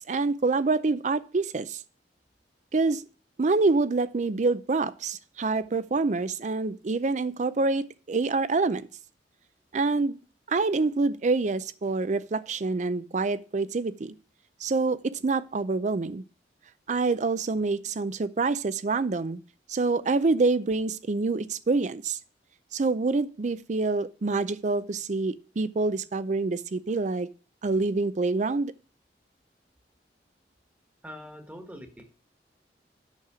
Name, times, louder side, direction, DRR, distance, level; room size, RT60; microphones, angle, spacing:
voice 1, 0.1-1.8 2.7-3.0 3.4-8.9 9.7-10.2 10.5-14.1 14.6-16.2 16.9-19.4 19.7-22.2 22.7-27.3 27.6-28.7, right 3 dB, 45° right, 0.5 m, -26 dB
voice 2, 31.0-32.0, equal, 10° right, 1.3 m, -43 dB
8.4 x 6.5 x 4.8 m
head